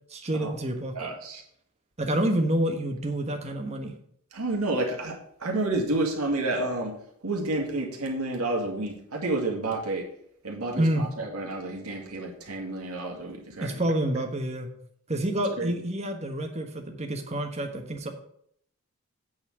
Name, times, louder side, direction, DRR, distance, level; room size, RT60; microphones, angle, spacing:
voice 1, 0.1-0.9 2.0-3.9 10.8-11.1 13.6-14.7 15.1-18.1, right 1 dB, 30° right, 4 dB, 1.2 m, -28 dB
voice 2, 0.9-1.4 4.3-6.9 7.2-10.1 10.4-13.7 15.6-15.7, right 2 dB, 85° right, 0 dB, 2.2 m, -30 dB
8.6 x 4.3 x 7.2 m, 0.67 s
head